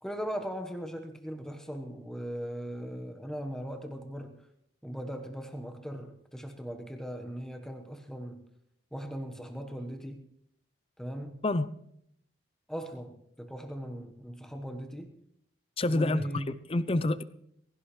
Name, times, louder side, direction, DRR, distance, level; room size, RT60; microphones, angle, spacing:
voice 1, 0.0-4.4 4.8-8.4 8.9-10.3 11.0-11.4 12.7-15.1 15.9-16.6, equal, 5° left, 1.3 m, -39 dB
voice 2, 15.8-17.2, left 2 dB, 30° left, 0.5 m, -28 dB
19.0 x 16.5 x 3.2 m
head